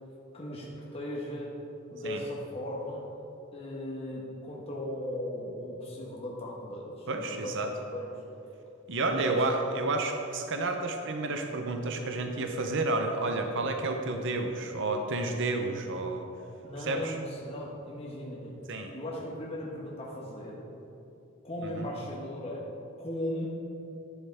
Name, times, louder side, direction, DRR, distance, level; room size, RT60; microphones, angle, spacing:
voice 1, 0.3-1.5 1.9-3.0 3.5-8.1 8.9-9.5 16.6-18.5 18.9-20.6 21.4-22.7 23.0-23.5, left 1 dB, 30° left, -4 dB, 1.4 m, -37 dB
voice 2, 7.1-7.7 8.9-16.3 16.8-17.2 18.7-18.9 21.8-21.9, right 2 dB, 60° right, 4 dB, 0.8 m, -30 dB
12.0 x 9.9 x 3.6 m, 2.8 s
head